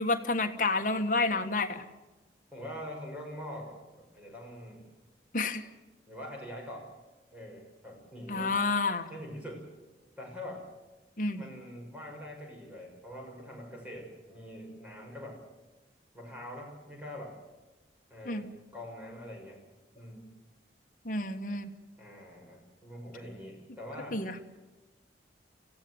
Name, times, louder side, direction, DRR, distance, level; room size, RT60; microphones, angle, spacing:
voice 1, 0.0-1.8 5.3-5.6 8.3-9.1 11.2-11.4 18.3-18.4 21.0-21.7 24.1-24.3, left 3 dB, 45° left, 6 dB, 1.5 m, -29 dB
voice 2, 2.5-4.8 6.1-6.9 7.3-8.6 9.1-9.6 10.2-10.7 11.4-15.4 16.1-17.3 18.1-19.6 19.9-20.3 22.0-24.2, equal, 10° right, -2 dB, 6.5 m, -44 dB
27.5 x 16.0 x 7.9 m, 1.2 s
head